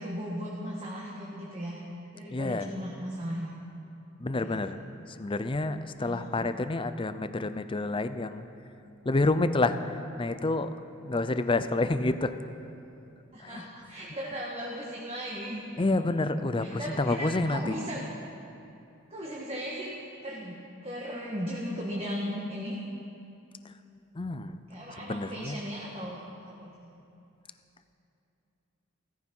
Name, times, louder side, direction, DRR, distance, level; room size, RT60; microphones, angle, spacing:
voice 1, 0.0-1.8 2.1-3.5 4.4-4.6 6.0-6.3 13.3-15.6 16.6-18.0 19.1-19.9 20.2-20.6 20.8-22.8 24.7-26.2 26.6-26.9, equal, 30° right, -4 dB, 1.6 m, -36 dB
voice 2, 2.3-2.7 4.2-4.8 5.1-8.4 9.0-10.8 11.0-12.3 13.4-13.7 15.8-17.7 23.6-23.7 24.1-24.6 25.0-25.6, left 2 dB, 25° left, 11 dB, 0.5 m, -29 dB
16.0 x 14.0 x 5.5 m, 2.8 s
head